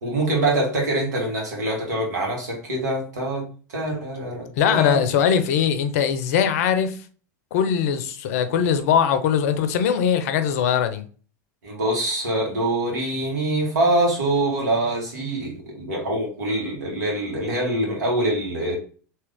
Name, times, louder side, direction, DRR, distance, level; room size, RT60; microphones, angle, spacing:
voice 1, 0.0-3.4 3.7-5.0 11.6-18.7, right 1 dB, 75° right, 1.7 m, -24 dB
voice 2, 4.6-7.0 7.5-11.0, left 8 dB, 60° left, 0.6 m, -21 dB
3.5 x 2.8 x 3.5 m
figure-of-eight pair, 85°, 9 cm